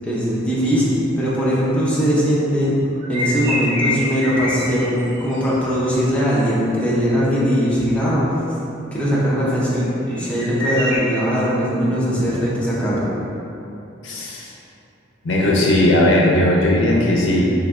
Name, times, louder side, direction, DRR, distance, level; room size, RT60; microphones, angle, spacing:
voice 1, 0.0-2.7 3.1-8.2 8.9-13.1, equal, 5° left, -9 dB, 0.6 m, -20 dB
sound 1, 2.9-5.6 9.8-11.0, left 1 dB, 55° right, 1.4 m, -26 dB
voice 2, 14.0-14.5 15.2-17.4, left 1 dB, 65° left, -2 dB, 0.5 m, -17 dB
3.4 x 3.2 x 2.4 m, 2.8 s
head